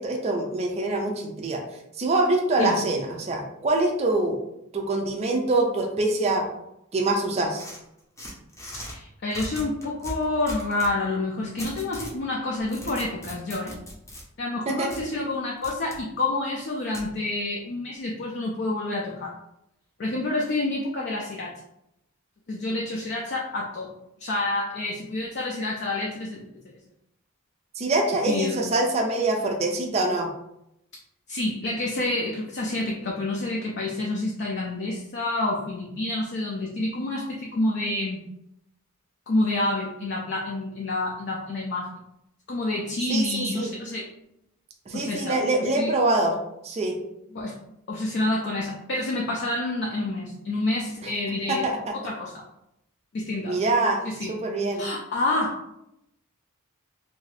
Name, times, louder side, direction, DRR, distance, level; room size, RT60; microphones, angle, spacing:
voice 1, 0.0-1.6 2.0-4.4 4.7-6.5 6.9-7.6 14.7-14.9 27.8-30.3 43.1-43.7 44.9-46.4 46.6-47.0 51.5-52.0 53.5-54.0 54.3-54.8, right 2 dB, 30° right, 1 dB, 0.4 m, -24 dB
sound 1, 7.5-8.9 9.3-10.9 11.6-12.2 12.6-14.2 14.9-15.0 15.6-16.0 16.9-17.1, equal, 15° left, 0.7 m, -38 dB
voice 2, 8.8-13.8 14.4-19.4 20.0-21.6 22.5-23.9 24.2-26.5 28.3-28.6 31.3-38.2 39.3-41.9 42.5-44.1 44.9-45.5 45.8-45.9 47.3-47.6 47.9-51.7 51.9-52.5 53.1-53.6 54.0-54.3 54.7-55.8, left 2 dB, 50° left, -2 dB, 0.4 m, -28 dB
2.7 x 2.6 x 3.2 m, 0.83 s
head